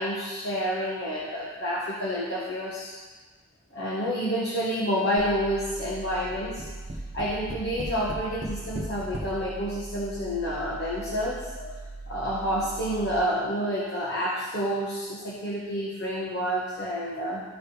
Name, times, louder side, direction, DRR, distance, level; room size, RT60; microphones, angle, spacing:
voice 1, 0.0-3.0 3.7-6.7 7.1-11.8 12.1-17.4, equal, 50° left, -6 dB, 1.2 m, -29 dB
sound 1, 5.2-13.2, right 3 dB, 20° right, 1.7 m, -41 dB
Tap, 6.3-9.3 10.2-10.3 10.6-10.7, equal, 40° right, 1.4 m, -36 dB
14.0 x 4.8 x 3.3 m, 1.3 s
head